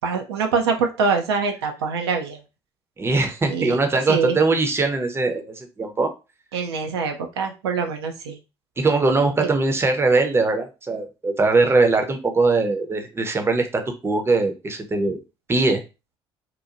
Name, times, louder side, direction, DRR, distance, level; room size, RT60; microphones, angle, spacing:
voice 1, 0.0-2.4 3.5-3.8 4.1-4.4 6.5-8.4, right 5 dB, 75° right, 3 dB, 0.4 m, -24 dB
voice 2, 3.0-6.1 8.8-15.2 15.5-15.8, right 3 dB, 20° right, 5 dB, 0.6 m, -21 dB
2.8 x 2.2 x 2.5 m, 0.29 s
figure-of-eight pair, 55°, 14 cm